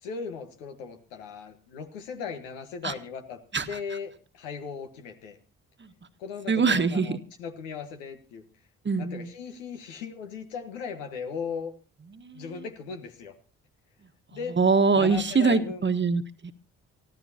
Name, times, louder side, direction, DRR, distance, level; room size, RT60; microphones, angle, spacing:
voice 1, 0.0-3.4 3.7-5.4 6.2-8.4 9.0-11.7 12.3-13.3 14.3-14.6 14.9-15.8, left 6 dB, 80° left, 6 dB, 1.5 m, -37 dB
voice 2, 6.5-7.2 8.8-9.3 12.2-12.4 14.6-16.5, right 4 dB, 30° right, 10 dB, 1.4 m, -23 dB
23.5 x 14.5 x 2.9 m, 0.36 s
hypercardioid pair, 45°, 38 cm